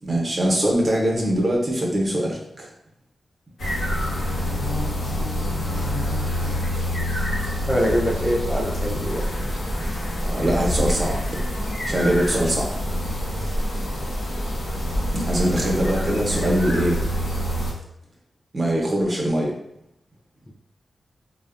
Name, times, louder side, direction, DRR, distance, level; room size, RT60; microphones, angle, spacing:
voice 1, 0.0-2.7 6.0-6.1 10.2-11.2 11.9-12.7 15.1-17.0 18.5-19.5, right 1 dB, 45° right, -2 dB, 0.6 m, -22 dB
sound 1, 3.6-17.7, equal, 80° left, 0.7 m, -26 dB
voice 2, 7.7-9.2, equal, ahead, -2 dB, 0.5 m, -23 dB
2.6 x 2.0 x 2.4 m, 0.76 s
cardioid pair, 55°, 0 cm